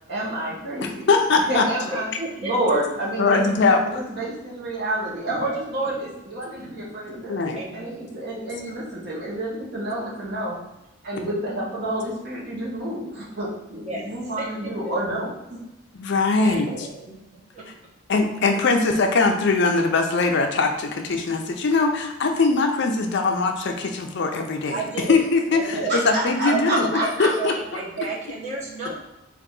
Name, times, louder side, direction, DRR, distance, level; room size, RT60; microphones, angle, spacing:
voice 1, 0.1-1.2 1.5-3.5 3.8-7.4 7.7-10.6 11.0-15.6 25.7-27.5, right 1 dB, 50° right, -5 dB, 1.2 m, -29 dB
voice 2, 1.1-1.7 3.2-3.8 7.3-7.6 15.9-16.9 18.1-24.8 25.1-26.9 27.2-27.5, left 3 dB, 55° left, 4 dB, 0.5 m, -21 dB
voice 3, 1.9-2.5 3.3-3.4 5.4-5.5 7.6-8.1 13.8-14.0 14.4-14.7 16.4-17.1 17.5-17.7 24.7-25.2 25.5-26.0 26.5-28.9, right 3 dB, 35° right, -5 dB, 1.0 m, -32 dB
3.8 x 2.5 x 3.7 m, 0.91 s
head